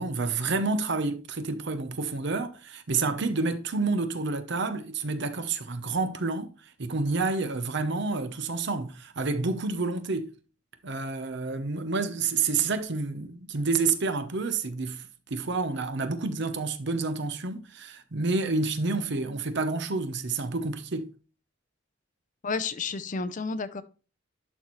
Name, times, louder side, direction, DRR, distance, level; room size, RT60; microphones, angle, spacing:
voice 1, 0.0-6.5 6.8-10.3 10.8-15.0 15.3-21.1, right 3 dB, 65° right, 0.8 m, -29 dB
voice 2, 22.4-23.8, left 4 dB, 40° left, 0.5 m, -31 dB
11.5 x 4.3 x 3.1 m
head